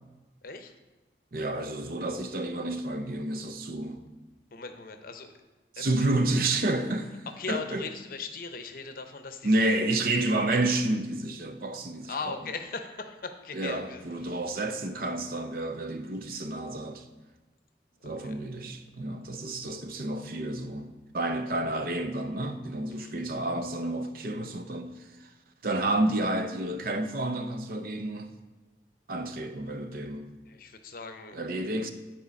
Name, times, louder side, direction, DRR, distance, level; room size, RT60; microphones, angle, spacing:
voice 1, 0.4-0.7 4.5-5.4 5.8-6.1 7.4-9.8 11.9-14.4 18.0-18.4 22.9-23.1 30.5-31.4, left 4 dB, 55° left, 0.7 m, -39 dB
voice 2, 1.3-4.0 5.8-7.8 9.4-12.1 13.5-17.1 18.0-25.3 25.6-28.3 29.1-30.3 31.3-31.9, right 2 dB, 55° right, 0.6 m, -30 dB
9.7 x 4.4 x 5.2 m
head